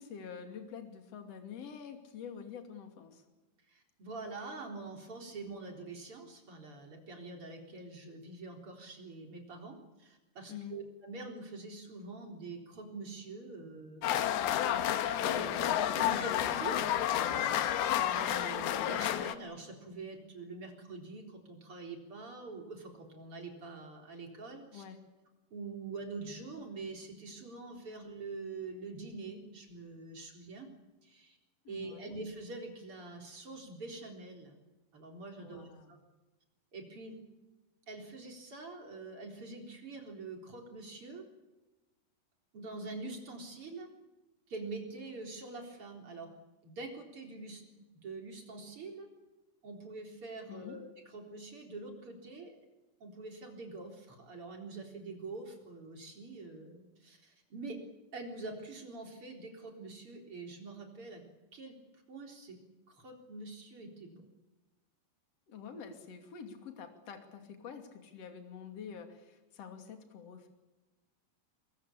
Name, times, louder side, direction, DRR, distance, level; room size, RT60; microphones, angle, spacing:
voice 1, 0.0-3.2 10.5-10.8 24.7-25.0 31.6-32.2 35.4-35.9 50.5-50.8 65.5-70.5, left 7 dB, 40° left, 5 dB, 3.3 m, -47 dB
voice 2, 3.7-24.8 25.5-30.7 31.0-31.4 31.7-34.6 34.9-36.0 36.7-37.2 37.9-41.2 42.5-43.9 44.5-46.3 46.6-49.1 49.6-52.6 53.0-57.8 58.1-61.2 61.5-61.8 62.1-62.6 62.9-64.3, right 3 dB, 35° right, 2 dB, 4.4 m, -45 dB
sound 1, 14.0-19.4, left 11 dB, 75° left, 3.0 m, -30 dB
23.0 x 21.5 x 8.6 m, 1.1 s
omnidirectional pair, 4.7 m